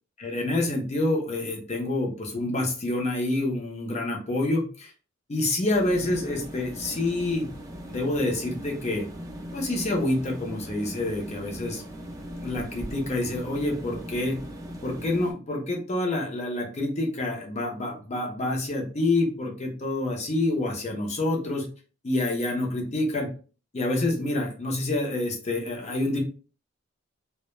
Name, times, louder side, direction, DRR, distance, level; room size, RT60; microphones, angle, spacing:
voice 1, 0.2-4.9 5.3-7.5 7.9-9.1 9.5-11.8 12.4-14.4 14.8-21.6 22.0-23.3 23.7-26.2, left 2 dB, 35° left, 0 dB, 0.6 m, -27 dB
sound 1, 5.7-15.3, equal, 15° right, 0.4 m, -39 dB
2.1 x 2.1 x 3.0 m, 0.38 s
head